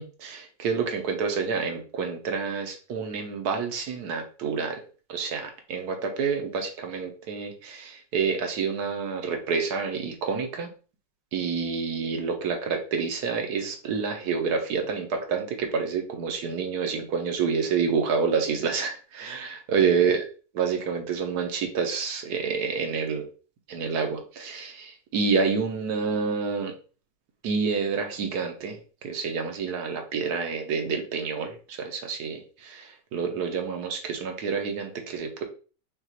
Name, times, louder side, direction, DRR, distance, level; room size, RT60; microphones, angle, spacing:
voice 1, 0.0-4.8 5.1-10.7 11.3-20.2 20.6-23.3 23.7-26.7 27.4-28.8 29.0-35.4, right 5 dB, 70° right, 4 dB, 1.2 m, -28 dB
5.8 x 2.3 x 2.8 m, 0.37 s
omnidirectional pair, 1.9 m